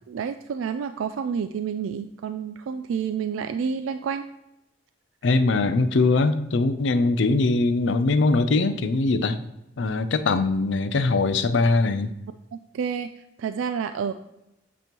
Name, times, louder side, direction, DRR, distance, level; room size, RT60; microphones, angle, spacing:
voice 1, 0.1-4.3 12.5-14.1, right 6 dB, 85° right, 9 dB, 0.3 m, -29 dB
voice 2, 5.2-9.4 9.8-12.1, left 3 dB, 65° left, 11 dB, 0.5 m, -21 dB
8.4 x 2.9 x 5.3 m, 0.88 s
head